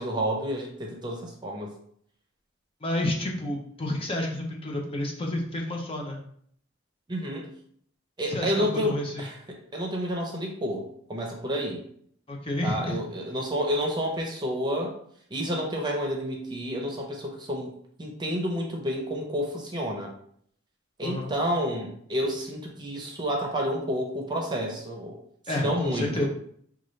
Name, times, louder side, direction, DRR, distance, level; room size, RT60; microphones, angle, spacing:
voice 1, 0.0-1.7 7.1-7.5 8.2-11.8 12.6-14.9 15.3-17.7 18.0-20.1 21.0-25.2 25.6-26.3, equal, 20° right, 0 dB, 0.7 m, -30 dB
voice 2, 2.8-6.2 8.3-9.3 12.3-12.9 21.0-21.3 25.5-26.3, left 1 dB, 30° left, 0 dB, 0.6 m, -30 dB
5.1 x 2.4 x 3.1 m, 0.64 s
head